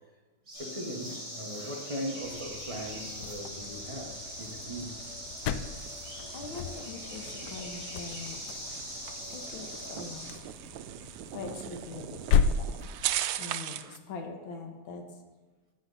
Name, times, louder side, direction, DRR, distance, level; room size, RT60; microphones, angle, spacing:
sound 1, 0.5-10.3, equal, 45° left, 4.8 m, -42 dB
voice 1, 0.5-5.0 6.2-6.3 6.6-6.7, equal, 20° right, 1 dB, 0.9 m, -39 dB
sound 2, 2.2-13.3, left 6 dB, 90° left, 0.9 m, -35 dB
sound 3, 3.3-14.0, right 12 dB, 90° right, 1.5 m, -40 dB
voice 2, 6.3-8.4 9.3-10.4 11.3-12.9 13.4-15.2, left 4 dB, 70° left, 3 dB, 1.9 m, -43 dB
13.0 x 8.2 x 4.1 m, 1.3 s
omnidirectional pair, 2.4 m